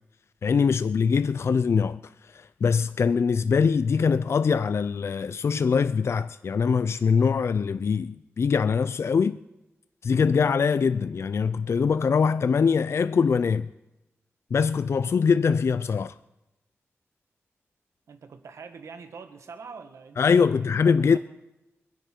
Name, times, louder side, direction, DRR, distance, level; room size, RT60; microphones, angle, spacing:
voice 1, 0.4-9.4 10.0-13.7 14.5-16.1 20.2-21.2, left 5 dB, 65° left, 0.4 m, -23 dB
voice 2, 18.1-20.7 21.0-21.2, right 5 dB, 85° right, 1.5 m, -44 dB
24.5 x 10.0 x 4.5 m
cardioid pair, 70°, 5 cm